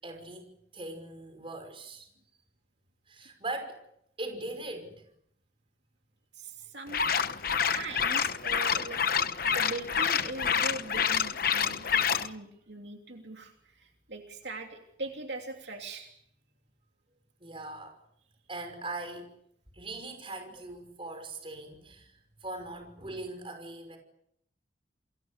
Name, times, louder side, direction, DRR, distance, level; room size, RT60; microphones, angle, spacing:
voice 1, 0.0-2.1 3.1-3.8 4.2-5.0 17.4-18.0 18.5-19.3 19.7-24.0, right 2 dB, 30° right, 5.8 m, -40 dB
voice 2, 6.3-7.0 7.7-9.0 9.4-16.1, right 2 dB, 70° right, 3.1 m, -41 dB
sound 1, 6.9-12.3, left 7 dB, 50° left, 1.0 m, -28 dB
28.5 x 23.0 x 6.8 m
head